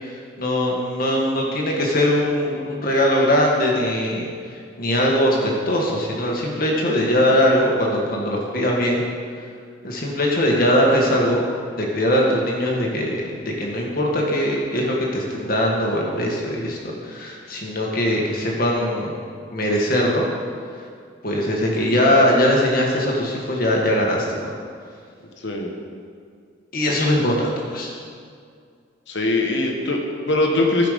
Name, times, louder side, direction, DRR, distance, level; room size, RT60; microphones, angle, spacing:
voice 1, 0.0-4.3 4.8-9.0 9.8-11.4 11.8-19.2 19.5-20.3 21.2-24.4 26.7-27.9, equal, 50° left, -1 dB, 1.8 m, -21 dB
voice 2, 29.1-30.9, left 2 dB, 65° left, 1 dB, 1.2 m, -21 dB
13.5 x 5.8 x 5.2 m, 2.2 s
head